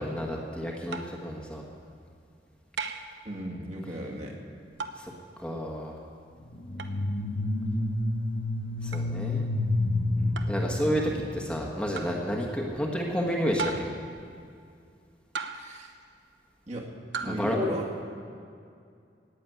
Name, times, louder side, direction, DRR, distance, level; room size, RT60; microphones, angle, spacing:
voice 1, 0.0-1.6 5.0-5.1 5.4-5.9 8.8-9.5 10.5-13.9 17.2-17.6, equal, 5° left, -1 dB, 1.4 m, -30 dB
sound 1, 0.9-1.2 2.8-3.2 4.8-5.1 6.8-7.0 8.9-9.1 10.4-10.6 11.9-12.2 13.6-14.0 15.3-15.8 17.1-17.4, right 4 dB, 90° right, 0.9 m, -36 dB
voice 2, 3.2-4.4 6.5-6.7 10.1-10.3 15.5-15.9 16.7-16.9 17.2-17.9, equal, 40° right, -2 dB, 2.2 m, -35 dB
sound 2, 6.6-11.4, left 2 dB, 75° left, 1.7 m, -29 dB
17.5 x 7.2 x 9.3 m, 2.4 s
head